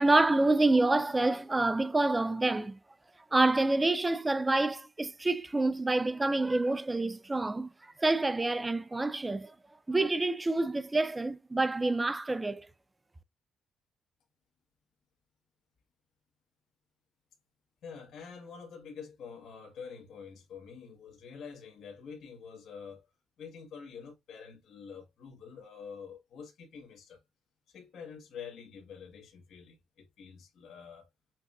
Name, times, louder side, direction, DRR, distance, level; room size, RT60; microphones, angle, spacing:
voice 1, 0.0-2.8 3.3-7.7 8.0-9.5 9.9-12.7, right 2 dB, 15° right, 0.4 m, -27 dB
voice 2, 17.8-23.1 23.4-27.2 27.7-31.1, left 6 dB, 70° left, 1.3 m, -47 dB
5.8 x 2.5 x 2.4 m
cardioid pair, 90°, 0 cm